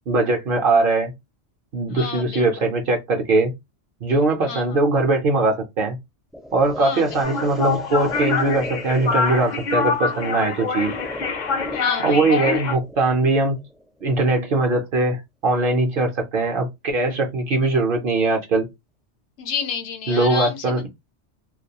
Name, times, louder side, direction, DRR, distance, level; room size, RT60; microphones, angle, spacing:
voice 1, 0.1-1.1 1.7-3.5 4.0-6.0 6.5-10.9 12.0-13.6 14.0-18.7 20.1-20.9, right 2 dB, 60° right, 0.6 m, -21 dB
voice 2, 1.9-2.7 4.4-4.8 6.8-7.5 11.7-12.6 19.4-20.9, left 7 dB, 75° left, 0.9 m, -31 dB
sound 1, 6.3-14.3, equal, ahead, 0.4 m, -39 dB
sound 2, 7.2-12.8, left 5 dB, 55° left, 0.5 m, -25 dB
2.3 x 2.2 x 2.7 m
omnidirectional pair, 1.2 m